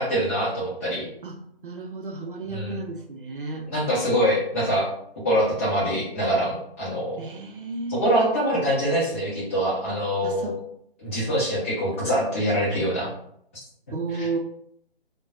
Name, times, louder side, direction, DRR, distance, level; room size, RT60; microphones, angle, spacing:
voice 1, 0.0-1.1 2.5-2.8 3.7-4.9 5.2-7.2 7.9-10.6 11.0-13.1 14.2-14.3, equal, 15° left, -7 dB, 0.6 m, -24 dB
voice 2, 1.6-3.7 7.2-8.2 10.2-10.5 13.9-14.4, right 3 dB, 60° right, 2 dB, 0.6 m, -32 dB
2.2 x 2.2 x 3.7 m, 0.71 s
figure-of-eight pair, 145°, 30 cm